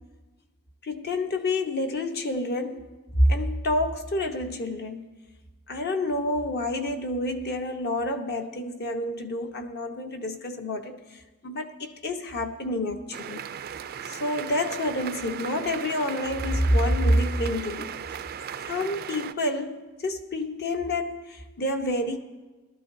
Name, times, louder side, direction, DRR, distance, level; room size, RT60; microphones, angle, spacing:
voice 1, 0.8-2.9 3.2-5.0 5.7-13.5 14.0-18.0 18.6-22.2, left 1 dB, 50° left, 5 dB, 0.9 m, -28 dB
sound 1, 13.1-19.3, right 8 dB, 45° right, 0.3 m, -37 dB
18.5 x 12.5 x 2.7 m, 1.2 s
head